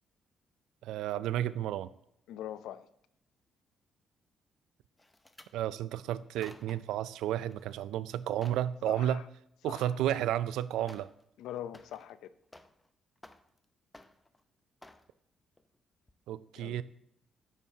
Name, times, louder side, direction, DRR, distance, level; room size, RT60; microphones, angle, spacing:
voice 1, 0.8-1.9 5.5-9.2 9.6-11.1 16.3-16.8, right 11 dB, 90° right, 0.3 m, -32 dB
voice 2, 2.3-2.9 8.9-9.3 9.6-10.0 11.4-12.4 16.6-16.8, left 11 dB, 85° left, 0.5 m, -42 dB
sound 1, 5.0-5.5 6.2-7.0 7.4-7.8 8.1-8.7 10.1-10.2 10.9-11.2 11.5-12.9 13.2-13.6 13.9-14.4 14.8-15.1 15.6-15.8 16.1-16.2, left 2 dB, 15° left, 0.6 m, -55 dB
11.0 x 8.4 x 2.8 m
cardioid pair, 90°, 0 cm